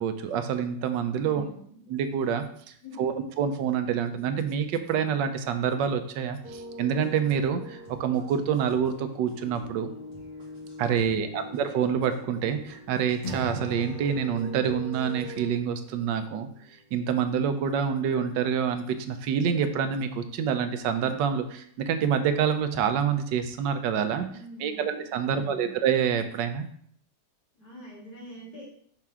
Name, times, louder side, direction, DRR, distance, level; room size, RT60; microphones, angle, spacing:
voice 1, 0.0-1.4 1.9-2.5 3.0-9.9 10.8-16.5 16.9-24.3 24.6-26.7, right 7 dB, 90° right, 9 dB, 1.3 m, -27 dB
voice 2, 1.2-1.8 2.8-3.1 11.0-11.5 24.3-25.7 27.5-28.7, left 1 dB, 55° left, -7 dB, 3.7 m, -45 dB
sound 1, 6.4-15.5, equal, 35° right, 2.3 m, -43 dB
Acoustic guitar / Strum, 13.2-16.5, right 1 dB, 30° left, 1.4 m, -40 dB
6.0 x 5.7 x 3.6 m, 0.63 s
omnidirectional pair, 1.9 m